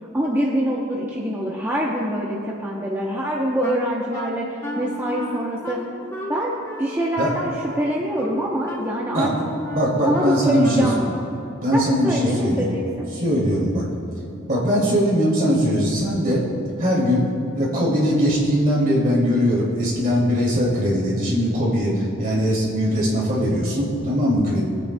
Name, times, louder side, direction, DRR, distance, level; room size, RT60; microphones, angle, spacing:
voice 1, 0.1-4.5 4.8-5.8 6.3-9.3 10.1-11.2 11.7-13.1, equal, 10° right, -4 dB, 0.7 m, -25 dB
Wind instrument woodwind instrument, 3.6-11.2, left 1 dB, 15° left, 1.2 m, -33 dB
voice 2, 9.7-10.9 11.6-12.7 13.2-13.8 14.5-16.4 16.8-17.3 17.5-24.6, equal, 40° right, -5 dB, 2.5 m, -20 dB
21.0 x 8.8 x 2.2 m, 2.8 s
head